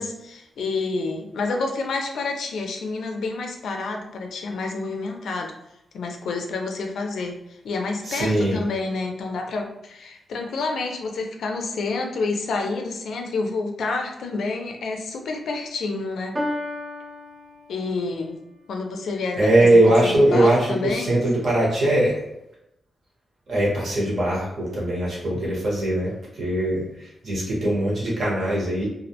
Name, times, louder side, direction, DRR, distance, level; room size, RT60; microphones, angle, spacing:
voice 1, 0.0-5.5 5.9-7.4 7.6-16.4 17.7-18.4 18.7-21.2, left 3 dB, 85° left, 2 dB, 0.4 m, -29 dB
voice 2, 8.1-8.6 19.4-22.2 23.5-26.1 26.4-26.8 27.2-28.9, right 1 dB, 55° right, -5 dB, 1.0 m, -20 dB
Piano, 16.3-18.3, left 1 dB, 20° right, 0.3 m, -32 dB
2.3 x 2.1 x 2.7 m, 0.84 s
wide cardioid pair, 160°, 0 cm